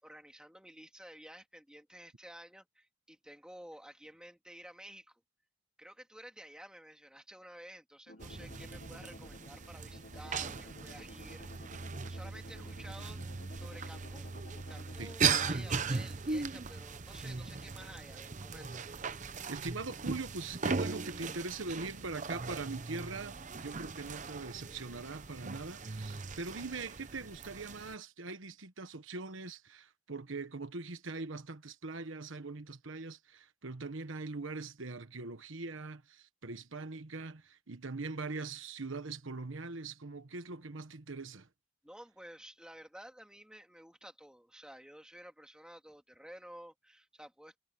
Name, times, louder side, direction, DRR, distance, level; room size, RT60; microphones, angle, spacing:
voice 1, 0.0-5.2 5.8-11.6 12.1-13.2 13.5-14.3 14.7-18.9 41.8-47.6, right 1 dB, 5° right, 2.5 m, -52 dB
sound 1, 8.1-15.2, left 1 dB, 50° left, 1.4 m, -53 dB
sound 2, 8.2-27.9, right 5 dB, 35° right, 0.8 m, -38 dB
voice 2, 19.5-41.5, right 3 dB, 70° right, 1.2 m, -42 dB
head